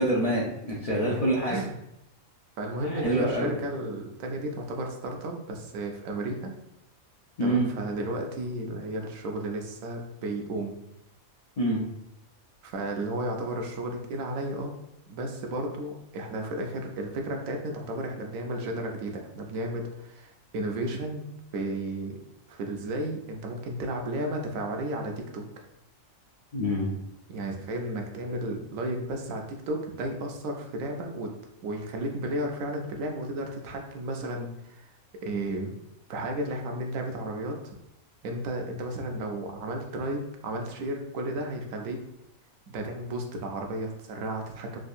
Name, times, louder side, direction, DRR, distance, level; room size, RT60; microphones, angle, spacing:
voice 1, 0.0-1.6 2.8-3.5 7.4-7.7 11.6-11.8 26.5-26.9, right 1 dB, 70° left, -4 dB, 0.3 m, -26 dB
voice 2, 0.9-1.7 2.6-6.5 7.4-10.7 12.6-14.7 15.1-21.2 21.5-22.2 22.5-25.5 27.3-31.3 31.6-34.9 35.2-35.7 36.1-37.8 38.2-42.0 42.7-44.8, right 1 dB, 75° right, 2 dB, 1.0 m, -33 dB
3.5 x 2.3 x 2.6 m, 0.84 s
omnidirectional pair, 1.5 m